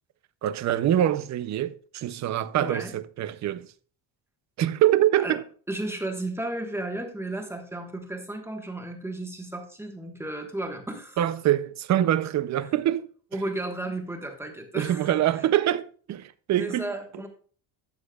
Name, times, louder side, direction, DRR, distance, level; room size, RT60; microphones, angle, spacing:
voice 1, 0.4-3.7 4.6-5.4 11.2-13.1 14.7-16.9, right 12 dB, 40° right, 0.5 m, -24 dB
voice 2, 2.6-2.9 5.2-5.4 5.7-11.2 13.3-15.4 16.5-17.3, right 1 dB, 5° right, 1.2 m, -34 dB
13.0 x 8.4 x 2.3 m
cardioid pair, 175°, 48 cm